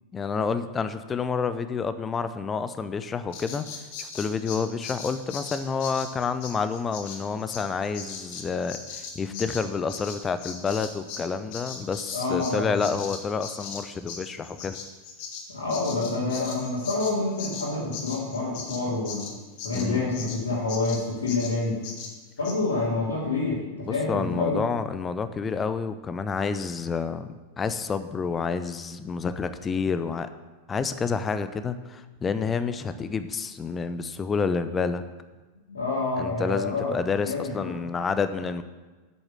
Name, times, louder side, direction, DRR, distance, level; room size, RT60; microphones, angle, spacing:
voice 1, 0.1-3.6 4.0-14.8 19.7-20.1 23.9-30.3 30.7-35.0 36.2-38.6, left 5 dB, 20° left, 11 dB, 0.6 m, -29 dB
Bird vocalization bird call bird song, 3.3-11.3 11.5-20.4 20.7-21.0 21.3-21.5 21.8-22.1 22.4-22.6, left 6 dB, 45° left, 1.7 m, -39 dB
voice 2, 12.1-12.7 15.5-19.3 19.6-21.8 22.4-24.6 35.7-37.0 37.2-37.7, left 3 dB, 70° left, -8 dB, 2.5 m, -28 dB
8.1 x 7.1 x 7.6 m, 1.3 s
figure-of-eight pair, 90°, 0 cm